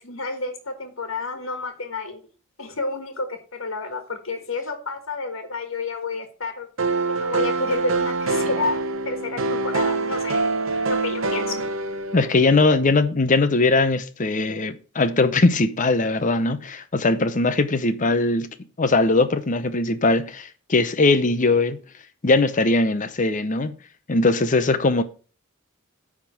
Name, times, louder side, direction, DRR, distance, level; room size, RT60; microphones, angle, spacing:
voice 1, 0.0-2.2 2.6-6.7 7.1-8.8 9.0-10.4 10.8-11.6, left 3 dB, 75° left, 1.6 m, -30 dB
sound 1, 6.8-12.7, right 3 dB, 75° right, 0.9 m, -25 dB
voice 2, 12.1-18.5 18.8-21.8 22.2-23.7 24.1-25.0, left 3 dB, 40° left, 0.7 m, -20 dB
9.4 x 3.7 x 6.1 m
head